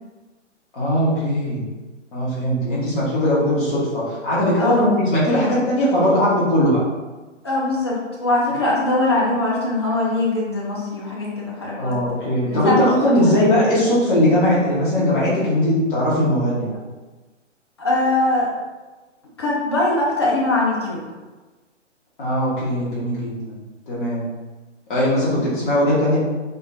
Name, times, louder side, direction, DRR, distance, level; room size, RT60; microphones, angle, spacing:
voice 1, 0.7-1.6 2.1-6.8 11.8-16.7 22.2-23.6 23.9-24.2 24.9-26.2, equal, 40° left, -8 dB, 1.5 m, -19 dB
voice 2, 4.6-4.9 7.4-12.0 12.5-12.9 17.8-18.5 19.4-21.0, left 2 dB, 20° left, -5 dB, 0.4 m, -21 dB
4.3 x 3.4 x 2.6 m, 1.2 s
figure-of-eight pair, 130°, 37 cm